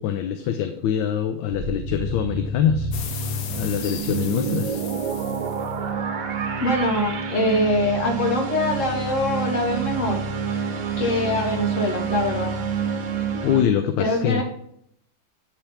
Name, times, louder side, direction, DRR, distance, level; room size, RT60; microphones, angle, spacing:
voice 1, 0.0-2.9 3.5-4.8 13.3-14.4, left 9 dB, 90° left, 8 dB, 1.4 m, -24 dB
sound 1, 1.5-13.6, right 5 dB, 65° right, 1.4 m, -28 dB
sound 2, 2.9-5.8, left 7 dB, 60° left, 1.0 m, -36 dB
voice 2, 6.6-10.2 11.0-12.5 14.0-14.4, left 1 dB, 45° left, 2 dB, 1.5 m, -23 dB
9.0 x 3.4 x 5.6 m, 0.70 s
omnidirectional pair, 2.0 m